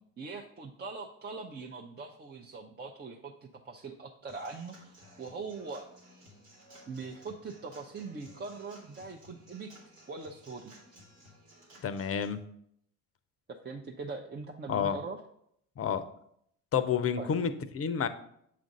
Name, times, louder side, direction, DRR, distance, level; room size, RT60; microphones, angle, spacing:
voice 1, 0.2-5.9 6.9-9.7 10.1-10.7 13.5-15.2 17.2-17.3, right 4 dB, 25° right, 1 dB, 0.6 m, -42 dB
Human voice / Acoustic guitar / Drum, 4.3-12.3, equal, 90° right, 1.5 m, -56 dB
voice 2, 11.8-12.4 14.7-15.0 15.8-16.0 16.7-18.1, left 7 dB, 35° left, 11 dB, 0.6 m, -29 dB
7.3 x 2.5 x 5.2 m, 0.70 s
hypercardioid pair, 50°, 38 cm